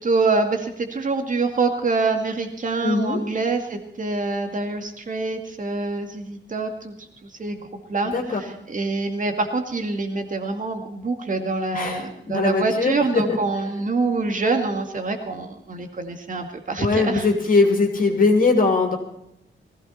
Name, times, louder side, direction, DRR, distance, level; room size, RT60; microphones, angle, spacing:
voice 1, 0.0-6.9 7.4-7.6 7.9-17.3, right 3 dB, 40° right, 5 dB, 2.3 m, -25 dB
voice 2, 2.8-3.2 8.0-8.4 11.7-13.4 16.8-19.0, left 3 dB, 45° left, 3 dB, 2.8 m, -20 dB
19.5 x 15.5 x 4.3 m, 0.79 s
wide cardioid pair, 170°, 20 cm